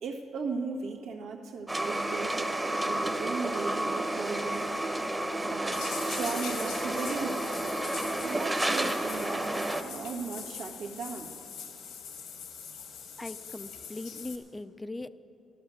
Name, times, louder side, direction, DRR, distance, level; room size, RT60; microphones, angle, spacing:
voice 1, 0.0-4.7 5.4-7.5 8.2-11.3, right 4 dB, 90° right, -1 dB, 1.7 m, -37 dB
sound 1, 1.7-9.8, right 1 dB, 15° right, 1.0 m, -31 dB
sound 2, 5.7-14.4, left 6 dB, 85° left, 1.7 m, -42 dB
voice 2, 13.2-15.1, left 2 dB, 15° left, 12 dB, 0.5 m, -40 dB
14.0 x 12.0 x 7.0 m, 2.8 s
cardioid pair, 90°, 0 cm